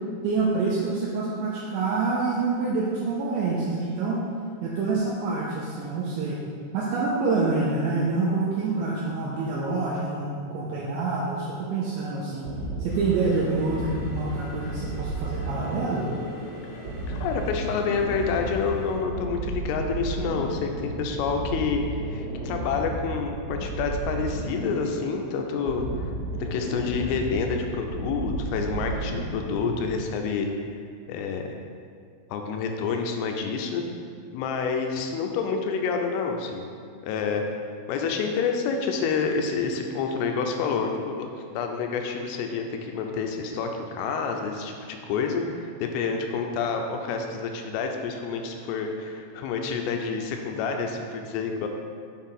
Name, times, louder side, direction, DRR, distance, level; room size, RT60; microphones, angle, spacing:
voice 1, 0.2-4.2 4.6-6.4 6.7-12.5 12.8-16.1, right 3 dB, 80° right, -5 dB, 2.7 m, -27 dB
sound 1, 12.4-30.1, right 2 dB, 60° right, 3.0 m, -33 dB
sound 2, 12.9-18.9, left 1 dB, 60° left, 2.9 m, -44 dB
voice 2, 17.1-21.8 22.1-25.9 26.3-30.5 31.1-31.4 32.3-33.8 34.3-36.7 37.0-37.4 37.9-51.7, left 5 dB, 80° left, 3 dB, 3.1 m, -28 dB
7.6 x 4.7 x 5.4 m, 2.2 s
omnidirectional pair, 6.0 m